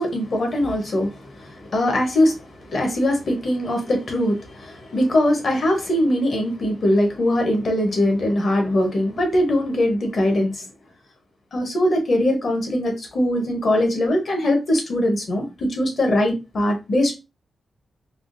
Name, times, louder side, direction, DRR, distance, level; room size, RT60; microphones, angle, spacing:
voice 1, 0.0-10.6 11.5-17.1, left 1 dB, 50° left, 0.9 m, -21 dB
3.5 x 2.2 x 2.5 m
wide cardioid pair, 155°, 0 cm